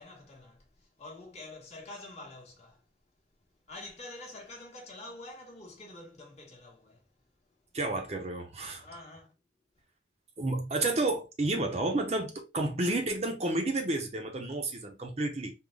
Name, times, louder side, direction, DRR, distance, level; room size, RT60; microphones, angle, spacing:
voice 1, 0.0-2.9 3.7-7.1 7.5-7.6 8.8-9.3, left 2 dB, 35° left, 1.0 m, -47 dB
voice 2, 7.7-8.8 10.4-15.5, right 2 dB, 35° right, 0.6 m, -31 dB
3.7 x 2.1 x 3.2 m
head